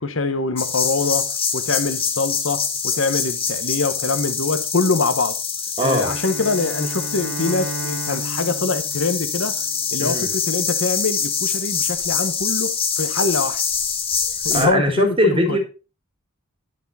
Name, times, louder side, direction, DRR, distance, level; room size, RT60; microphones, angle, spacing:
voice 1, 0.0-5.4 5.8-9.6 9.9-13.6 14.2-15.6, left 3 dB, 65° left, 1.0 m, -24 dB
sound 1, 0.6-14.7, left 6 dB, 25° left, 1.2 m, -25 dB
voice 2, 5.8-6.1 10.0-10.3 14.5-15.6, equal, 25° right, 1.8 m, -20 dB
Bowed string instrument, 5.9-10.1, right 2 dB, 65° right, 0.9 m, -34 dB
9.6 x 6.6 x 4.1 m
head